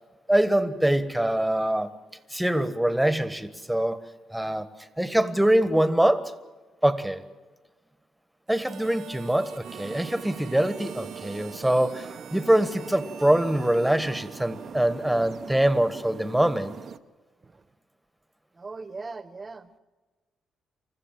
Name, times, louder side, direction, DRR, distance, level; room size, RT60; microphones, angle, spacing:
voice 1, 0.3-1.9 2.3-4.0 4.3-4.7 5.0-6.3 6.8-7.2 8.5-16.8, right 1 dB, 5° right, 12 dB, 1.5 m, -24 dB
Harmonica, 8.5-15.4, right 9 dB, 75° right, 1.5 m, -46 dB
sound 1, 9.6-17.0, right 7 dB, 55° right, 0.8 m, -42 dB
voice 2, 14.7-15.5 17.4-17.6 18.5-19.7, right 3 dB, 25° right, 13 dB, 1.3 m, -41 dB
28.5 x 14.5 x 7.5 m, 1.3 s
cardioid pair, 90°, 0 cm